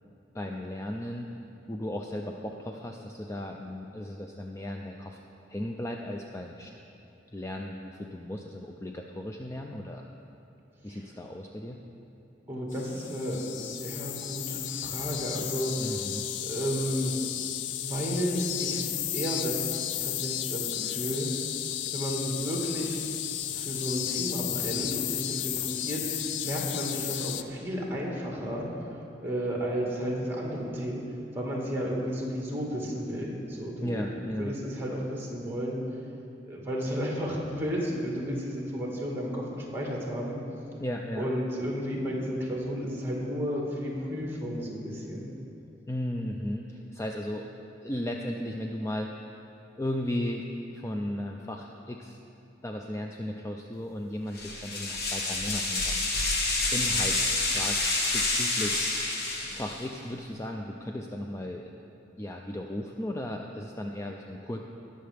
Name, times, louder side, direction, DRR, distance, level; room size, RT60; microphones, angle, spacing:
voice 1, 0.3-1.3 1.7-5.2 5.5-6.7 7.3-10.1 10.8-11.8 15.8-16.3 33.8-34.5 40.8-41.3 45.9-47.5 47.8-49.1 49.8-52.2 52.6-56.1 56.7-57.8 58.1-58.8 59.5-61.7 62.2-64.7, left 1 dB, 15° left, 2 dB, 0.4 m, -35 dB
voice 2, 12.5-16.0 16.4-17.2 17.8-18.8 19.1-19.7 20.0-21.3 21.9-23.0 23.5-28.7 29.2-31.0 31.3-35.8 36.5-40.4 41.2-45.3, equal, 15° right, -3 dB, 1.7 m, -32 dB
sound 1, 12.7-27.4, left 12 dB, 85° left, 0.4 m, -33 dB
sound 2, 54.3-59.9, left 2 dB, 60° left, 1.3 m, -28 dB
19.0 x 6.5 x 3.4 m, 2.9 s
head